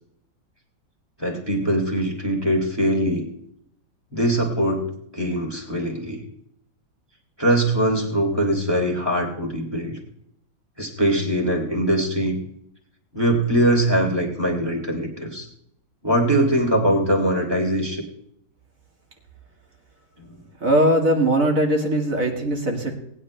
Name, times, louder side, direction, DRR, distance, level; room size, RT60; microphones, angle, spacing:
voice 1, 1.2-3.3 4.1-6.2 7.4-10.0 10.8-12.4 13.1-15.5 16.0-18.0 20.2-20.4, right 1 dB, 15° right, 0 dB, 2.9 m, -22 dB
voice 2, 20.6-22.9, right 1 dB, 50° right, 1 dB, 2.5 m, -20 dB
19.5 x 10.0 x 3.3 m, 0.70 s
omnidirectional pair, 1.9 m